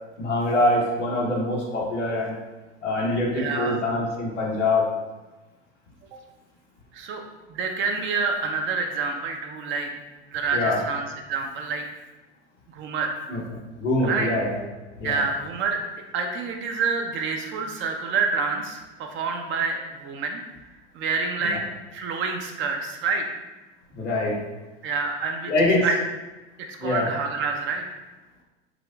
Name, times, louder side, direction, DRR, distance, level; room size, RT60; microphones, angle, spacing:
voice 1, 0.2-2.4 2.8-4.9 10.5-10.8 13.3-13.4 13.8-14.6 15.0-15.2 21.4-21.5 23.9-24.4 25.5-25.9 26.8-27.1, left 2 dB, 90° left, -4 dB, 1.1 m, -24 dB
voice 2, 3.3-3.8 6.9-7.2 7.5-9.9 10.3-11.8 12.7-13.2 14.0-14.3 15.0-15.8 16.1-20.4 20.9-21.6 21.9-23.4 24.8-25.5 25.8-26.0 26.7-28.0, right 4 dB, 35° right, 3 dB, 0.5 m, -27 dB
4.9 x 2.4 x 2.4 m, 1.1 s
hypercardioid pair, 90°, 35 cm